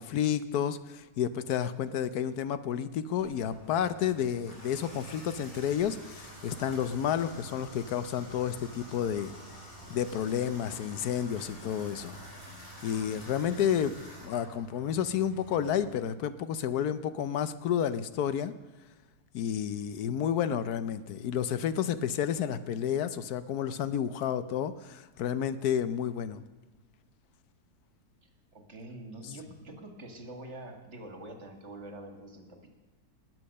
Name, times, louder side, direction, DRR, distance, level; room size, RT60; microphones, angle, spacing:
voice 1, 0.0-9.3 9.9-12.2 12.8-13.9 14.2-18.5 19.3-26.4 29.2-29.3, left 9 dB, 80° left, 13 dB, 1.2 m, -30 dB
Water tap faucet / Bathtub (filling or washing), 3.2-16.0, equal, 35° left, 4.2 m, -48 dB
voice 2, 28.5-32.7, right 1 dB, 45° right, 4 dB, 2.0 m, -45 dB
20.0 x 7.7 x 6.5 m, 1.2 s
omnidirectional pair, 1.6 m